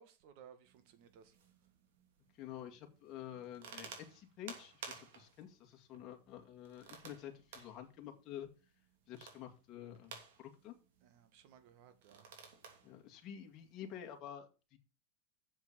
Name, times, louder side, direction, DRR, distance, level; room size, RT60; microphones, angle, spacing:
voice 1, 0.0-1.3 11.0-12.3, right 8 dB, 60° right, 1.7 m, -60 dB
sound 1, 0.6-14.2, right 6 dB, 75° right, 2.9 m, -56 dB
voice 2, 2.4-8.5 9.1-10.7 12.8-14.8, left 10 dB, 40° left, 1.9 m, -49 dB
7.3 x 6.2 x 6.7 m
supercardioid pair, 135°, 0 cm